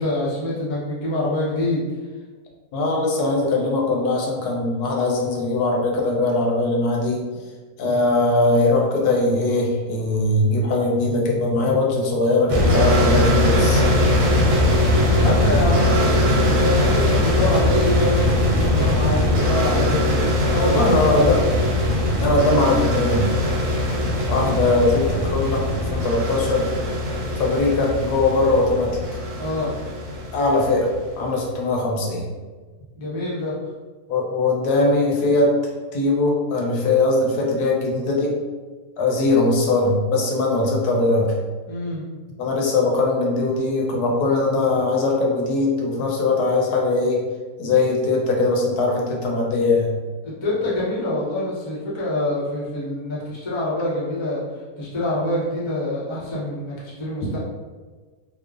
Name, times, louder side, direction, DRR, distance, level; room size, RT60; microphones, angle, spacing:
voice 1, 0.0-1.8 15.2-21.4 24.3-24.6 29.4-29.7 32.9-33.5 41.7-42.1 50.2-54.4 54.8-57.4, left 1 dB, 35° left, -7 dB, 0.4 m, -25 dB
voice 2, 2.7-7.2 7.8-13.8 20.7-21.4 22.2-23.3 24.3-25.6 25.9-26.7 27.4-28.9 30.3-30.9 31.2-32.3 34.1-35.5 35.9-38.3 39.0-41.3 42.4-47.2 47.6-49.9, left 2 dB, 80° left, -1 dB, 1.1 m, -20 dB
sound 1, 12.5-31.1, left 1 dB, 90° right, 1.2 m, -20 dB
3.0 x 2.0 x 2.4 m, 1.4 s
omnidirectional pair, 1.6 m